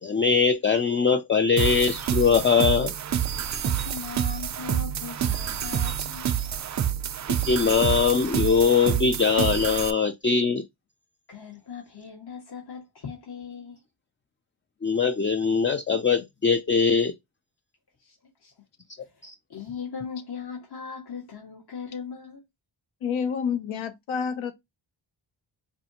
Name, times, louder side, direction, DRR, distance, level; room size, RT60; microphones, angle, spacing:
voice 1, 0.0-2.9 7.3-10.6 14.8-17.1 19.2-19.3, left 5 dB, 25° left, 0.4 m, -22 dB
sound 1, 1.6-9.9, right 9 dB, 40° right, 0.4 m, -28 dB
voice 2, 3.6-6.3 11.3-13.8 18.0-18.1 18.4-18.5 19.0-22.4, left 6 dB, 55° left, 1.6 m, -39 dB
voice 3, 23.0-24.5, left 6 dB, 80° left, 0.7 m, -28 dB
4.7 x 2.5 x 2.8 m
wide cardioid pair, 85°, 46 cm